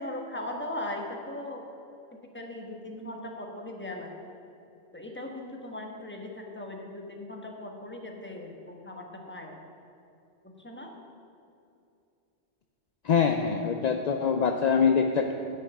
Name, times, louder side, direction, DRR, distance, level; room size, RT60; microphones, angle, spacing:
voice 1, 0.0-1.7 2.3-4.1 4.9-9.6 10.6-10.9, left 1 dB, 10° left, 1 dB, 1.2 m, -38 dB
voice 2, 13.0-15.3, left 6 dB, 55° left, 5 dB, 0.4 m, -24 dB
10.0 x 5.9 x 8.5 m, 2.6 s
omnidirectional pair, 1.2 m